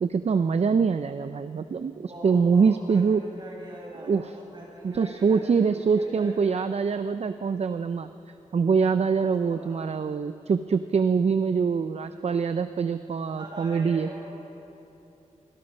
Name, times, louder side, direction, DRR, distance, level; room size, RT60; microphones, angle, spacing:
voice 1, 0.0-3.2 4.1-4.3 4.8-8.1 8.5-14.1, right 5 dB, 55° right, 10 dB, 0.5 m, -24 dB
voice 2, 2.0-6.4 9.1-9.8 13.3-14.2, right 1 dB, 35° right, -3 dB, 6.5 m, -43 dB
26.5 x 21.0 x 5.5 m, 3.0 s
wide cardioid pair, 130°, 13 cm